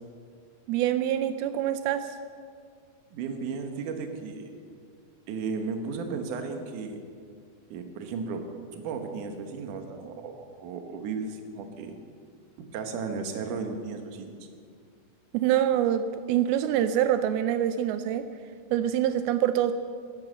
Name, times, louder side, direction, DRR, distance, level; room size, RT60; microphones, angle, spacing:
voice 1, 0.7-2.1 15.3-18.3 18.7-19.7, right 11 dB, 85° right, 10 dB, 2.5 m, -25 dB
voice 2, 3.1-4.5 5.3-7.0 7.7-8.4 8.7-11.9 12.7-14.3, right 5 dB, 65° right, 5 dB, 2.5 m, -34 dB
14.5 x 10.5 x 7.5 m, 2.2 s
omnidirectional pair, 4.3 m